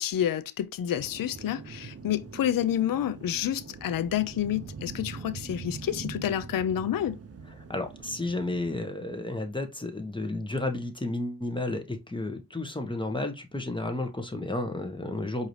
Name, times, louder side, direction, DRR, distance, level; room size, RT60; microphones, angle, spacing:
voice 1, 0.0-7.2, left 10 dB, 55° left, 0.5 m, -29 dB
sound 1, 0.9-8.8, right 4 dB, 35° right, 0.8 m, -43 dB
voice 2, 7.7-15.5, left 2 dB, 10° left, 1.1 m, -32 dB
4.7 x 2.8 x 3.1 m
cardioid pair, 40°, 40 cm